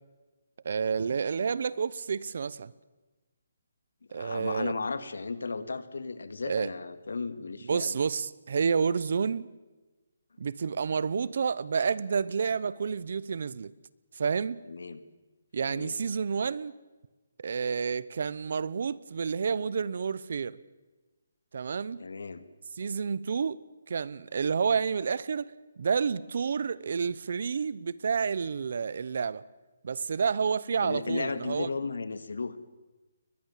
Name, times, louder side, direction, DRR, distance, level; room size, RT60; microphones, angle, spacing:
voice 1, 0.6-2.7 4.1-4.7 6.5-6.7 7.7-9.5 10.4-13.7 14.1-14.6 15.5-16.7 17.4-20.6 21.5-22.0 22.8-23.6 23.9-29.4 29.8-31.7, right 6 dB, 50° right, 0.8 m, -29 dB
voice 2, 4.1-8.0 14.7-15.0 15.7-15.9 22.0-22.4 30.8-32.6, left 4 dB, 80° left, 1.9 m, -35 dB
21.5 x 21.5 x 7.4 m
hypercardioid pair, 175°, 0 cm